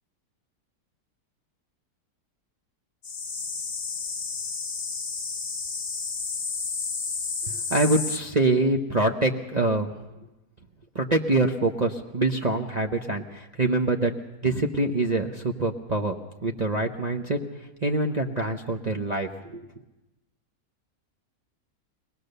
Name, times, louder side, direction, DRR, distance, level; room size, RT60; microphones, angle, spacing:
sound 1, 3.0-8.2, left 4 dB, 45° left, 1.0 m, -31 dB
voice 1, 7.5-9.9 10.9-14.1 14.4-16.1 16.4-17.4 17.8-19.7, right 2 dB, 35° right, 1 dB, 0.8 m, -25 dB
22.5 x 19.0 x 6.7 m, 1.0 s
omnidirectional pair, 1.8 m